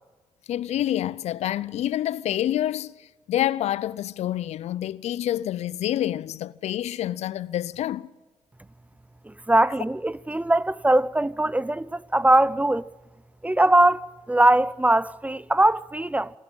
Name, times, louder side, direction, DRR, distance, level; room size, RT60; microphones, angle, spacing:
voice 1, 0.5-2.9 3.3-8.1, left 12 dB, 70° left, 0.6 m, -27 dB
voice 2, 9.3-12.8 13.4-16.3, right 1 dB, 10° right, 0.6 m, -21 dB
27.0 x 12.0 x 8.8 m
supercardioid pair, 55°, 12 cm